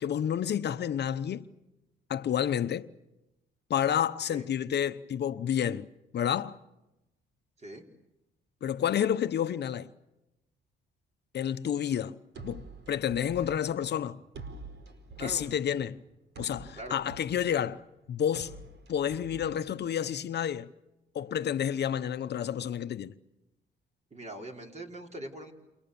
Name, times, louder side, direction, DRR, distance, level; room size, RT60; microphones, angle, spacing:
voice 1, 0.0-1.5 2.1-2.9 3.7-5.9 6.1-6.6 8.6-9.9 11.3-12.2 12.4-14.2 15.2-16.0 16.4-17.8 18.1-18.6 18.9-20.7 21.1-23.1, left 9 dB, 55° left, 0.9 m, -30 dB
sound 1, 12.3-20.3, right 3 dB, 65° right, 4.8 m, -48 dB
voice 2, 15.2-15.5 16.7-17.1 24.1-25.5, right 1 dB, 35° right, 5.0 m, -42 dB
29.5 x 28.5 x 7.1 m
cardioid pair, 90°, 20 cm